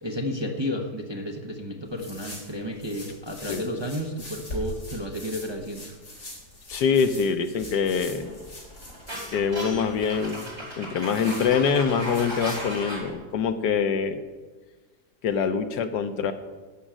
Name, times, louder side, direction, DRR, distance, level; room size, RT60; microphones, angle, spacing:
voice 1, 0.0-6.0, equal, 20° right, 2 dB, 0.8 m, -32 dB
sound 1, 1.9-12.8, left 1 dB, 60° left, 4.7 m, -42 dB
voice 2, 6.7-8.3 9.3-10.5 10.8-14.2 15.2-16.3, left 6 dB, 80° left, 9 dB, 1.4 m, -24 dB
sound 2, 8.0-13.1, right 1 dB, 80° right, 5.6 m, -36 dB
11.0 x 6.4 x 8.7 m, 1.3 s
omnidirectional pair, 1.8 m